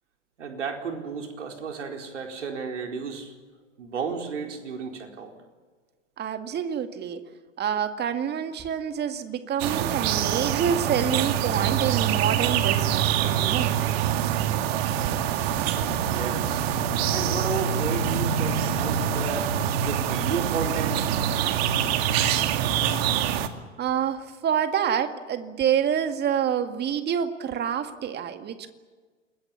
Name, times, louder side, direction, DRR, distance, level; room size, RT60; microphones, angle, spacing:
voice 1, 0.4-3.3 3.8-5.3 16.1-21.0, right 5 dB, 75° right, 3 dB, 4.6 m, -33 dB
voice 2, 6.2-7.2 7.6-13.8 23.8-28.7, right 8 dB, 25° right, 8 dB, 2.2 m, -27 dB
sound 1, 9.6-23.5, right 9 dB, 55° right, 2.3 m, -25 dB
29.0 x 21.0 x 7.2 m, 1.4 s
hypercardioid pair, 100°, 36 cm